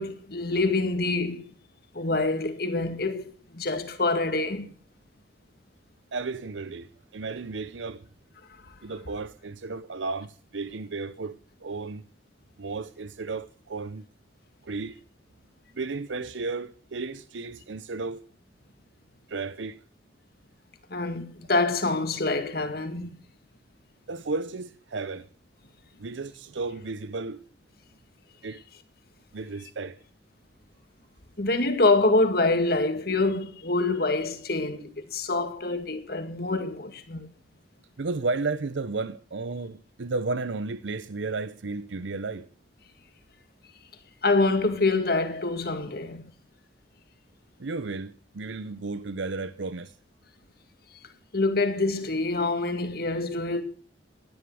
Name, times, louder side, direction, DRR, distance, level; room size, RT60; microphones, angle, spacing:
voice 1, 0.0-1.4 1.9-4.7 20.9-23.1 31.4-37.3 44.2-46.2 51.3-53.6, left 3 dB, 55° left, 2.2 m, -26 dB
voice 2, 6.1-8.0 8.8-12.0 12.6-14.0 14.6-15.0 15.7-18.2 19.3-19.8 24.1-25.3 26.0-27.4 28.4-28.6 29.3-30.0 38.0-42.5 47.6-49.9, right 3 dB, 90° right, 0.7 m, -33 dB
16.5 x 11.0 x 6.2 m
head